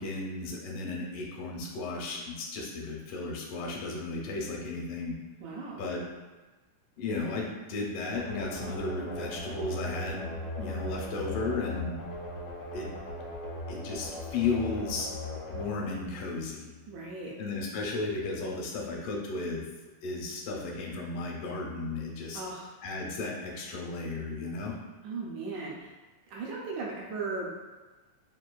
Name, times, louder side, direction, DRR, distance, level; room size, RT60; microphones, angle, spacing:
voice 1, 0.0-5.2 5.8-6.0 7.0-10.2 10.6-12.0 12.7-12.9 13.7-15.1 15.5-16.7 17.4-19.6 20.0-22.4 22.8-24.7, left 3 dB, 85° left, -1 dB, 2.3 m, -34 dB
voice 2, 5.4-5.9 16.9-17.4 22.3-22.7 25.0-25.9 26.3-27.5, right 3 dB, 75° right, -3 dB, 1.9 m, -37 dB
sound 1, 8.1-16.8, left 1 dB, 65° left, 0.9 m, -39 dB
6.9 x 2.6 x 2.2 m, 1.2 s
omnidirectional pair, 3.7 m